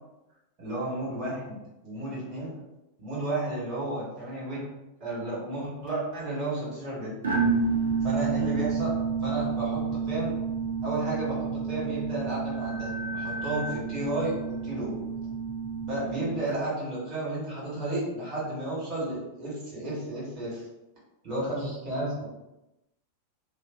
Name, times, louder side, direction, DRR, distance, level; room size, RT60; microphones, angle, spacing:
voice 1, 0.6-1.6 1.8-2.5 3.0-4.6 5.0-7.1 8.0-8.9 9.2-10.3 10.8-14.9 15.8-20.6 21.2-22.2, right 1 dB, 40° right, -7 dB, 1.4 m, -32 dB
sound 1, 7.2-16.5, right 5 dB, 70° right, 0.5 m, -30 dB
2.5 x 2.1 x 2.5 m, 0.95 s
figure-of-eight pair, 90°, 0 cm